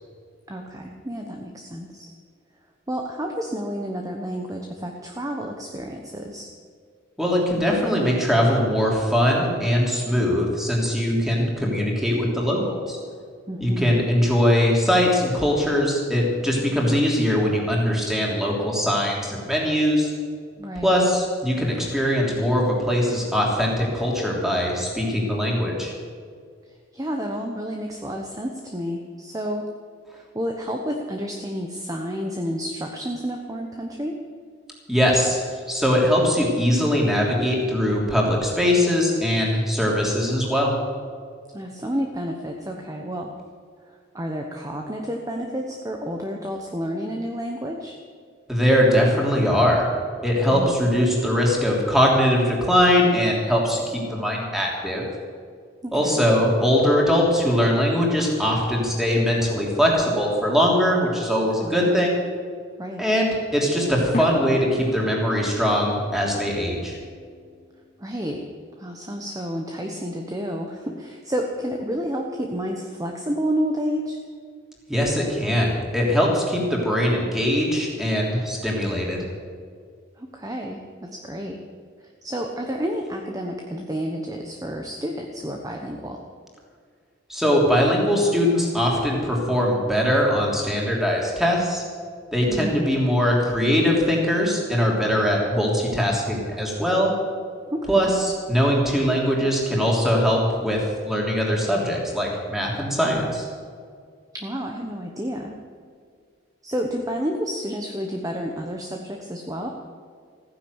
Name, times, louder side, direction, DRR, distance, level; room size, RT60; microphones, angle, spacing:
voice 1, 0.5-2.1 2.9-6.5 13.5-14.0 20.6-21.0 26.9-29.6 30.1-34.1 41.5-43.3 43.9-48.0 50.5-50.7 55.8-56.2 61.6-62.0 62.8-63.1 68.0-68.4 68.8-74.2 80.2-81.6 82.2-86.2 92.5-92.9 97.7-98.1 104.3-105.6 106.6-109.7, equal, 20° right, 2 dB, 1.1 m, -30 dB
voice 2, 7.2-13.0 13.6-20.1 20.8-25.9 34.9-40.7 48.5-49.9 50.2-55.0 55.9-62.2 63.0-67.0 74.9-79.2 87.3-91.8 92.3-97.1 97.9-103.5, equal, ahead, -2 dB, 3.2 m, -21 dB
sound 1, 64.1-68.5, left 2 dB, 40° left, 0.9 m, -37 dB
15.0 x 10.0 x 8.1 m, 2.1 s
head